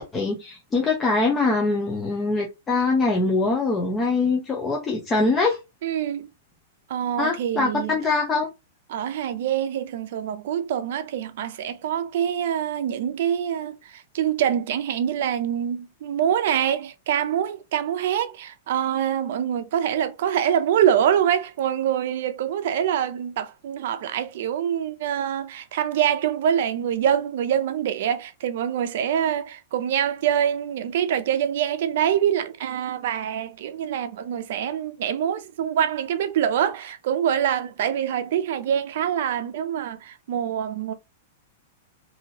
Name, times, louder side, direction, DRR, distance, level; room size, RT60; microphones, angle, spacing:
voice 1, 0.0-5.6 7.2-8.5, left 3 dB, 15° left, 0.6 m, -23 dB
voice 2, 5.8-6.3 6.9-8.0 8.9-40.9, right 9 dB, 60° right, 0.5 m, -25 dB
2.8 x 2.7 x 2.8 m
supercardioid pair, 155°, 0 cm